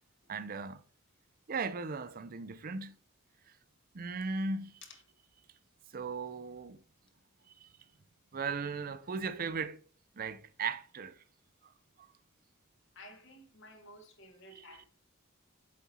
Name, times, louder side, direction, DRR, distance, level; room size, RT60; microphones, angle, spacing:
voice 1, 0.3-0.8 1.5-2.9 3.9-4.8 5.9-6.8 7.6-7.7 8.3-9.8 10.1-11.2 14.5-14.7, right 4 dB, 45° right, 0.5 m, -37 dB
voice 2, 12.9-14.9, left 1 dB, 60° left, 1.4 m, -53 dB
7.3 x 4.3 x 4.3 m
head